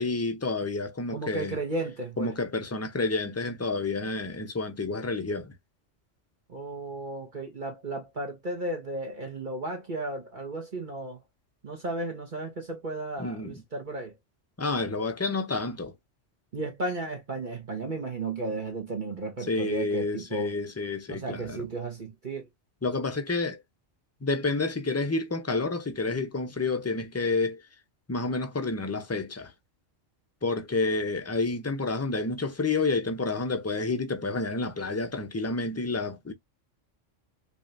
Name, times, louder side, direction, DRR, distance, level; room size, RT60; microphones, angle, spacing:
voice 1, 0.0-1.6 2.2-5.5 13.2-13.5 14.6-15.9 19.5-21.7 22.8-23.6 24.2-27.6 28.1-29.5 30.4-36.3, left 3 dB, 25° left, 0.3 m, -29 dB
voice 2, 1.1-2.3 6.5-11.2 11.6-14.2 16.5-20.6 21.1-22.5, right 2 dB, 40° right, 1.3 m, -34 dB
5.0 x 2.9 x 2.4 m
omnidirectional pair, 1.3 m